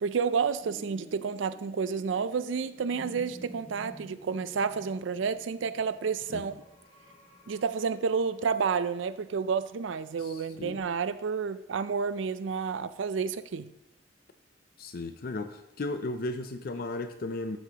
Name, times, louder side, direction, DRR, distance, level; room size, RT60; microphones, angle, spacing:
voice 1, 0.0-6.5 7.5-13.7, right 5 dB, 85° right, 14 dB, 0.4 m, -30 dB
sound 1, 0.6-10.8, right 1 dB, 25° left, 2.0 m, -51 dB
voice 2, 10.2-10.8 14.8-17.6, left 2 dB, 50° left, 9 dB, 0.4 m, -35 dB
12.5 x 6.1 x 2.9 m, 0.87 s
head